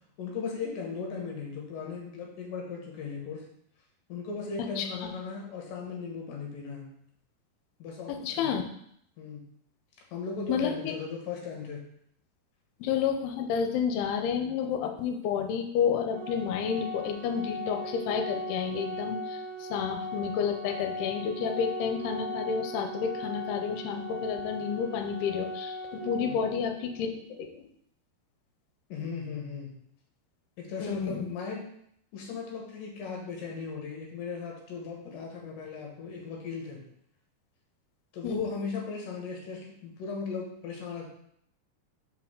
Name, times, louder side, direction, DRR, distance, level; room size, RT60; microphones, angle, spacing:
voice 1, 0.2-3.4 4.1-6.9 7.8-8.5 9.2-9.4 10.1-11.8 26.2-26.5 28.9-29.7 30.6-31.6 32.1-36.8 38.1-41.1, left 5 dB, 65° left, -1 dB, 2.6 m, -37 dB
voice 2, 8.1-8.6 10.5-10.9 12.8-27.7 30.8-31.3 38.2-38.5, left 7 dB, 85° left, 5 dB, 2.6 m, -30 dB
Organ, 16.1-27.1, equal, 85° right, 1.6 m, -38 dB
5.5 x 4.7 x 3.6 m, 0.70 s
omnidirectional pair, 4.6 m